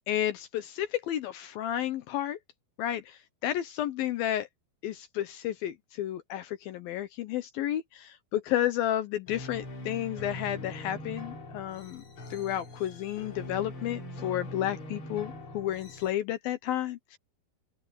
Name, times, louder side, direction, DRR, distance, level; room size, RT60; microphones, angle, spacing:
voice 1, 0.1-2.4 2.8-4.5 4.8-12.0 12.3-17.2, left 12 dB, 75° left, 2.4 m, -32 dB
sound 1, 9.3-16.1, left 1 dB, 35° left, 3.8 m, -42 dB
open air
omnidirectional pair, 4.8 m